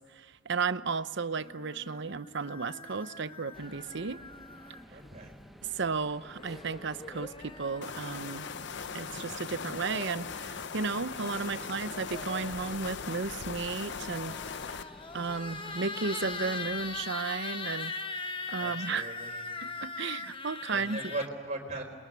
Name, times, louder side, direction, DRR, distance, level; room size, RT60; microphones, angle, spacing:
voice 1, 0.1-4.2 5.6-8.5 8.9-14.4 15.1-17.9 18.2-19.2 19.6-21.0, right 4 dB, 60° right, 13 dB, 0.8 m, -34 dB
sound 1, 1.4-5.1 6.3-8.6 9.4-10.4 11.5-12.7 13.7-21.3, left 4 dB, 25° left, 1.0 m, -41 dB
sound 2, 3.5-17.1, equal, ahead, 0.8 m, -54 dB
voice 2, 4.9-5.3 11.4-11.8 15.2-15.3 18.6-19.4 20.7-21.8, right 2 dB, 35° right, 2 dB, 4.4 m, -39 dB
sound 3, 7.8-14.8, left 6 dB, 60° left, 0.8 m, -39 dB
27.5 x 22.5 x 9.7 m, 1.5 s
head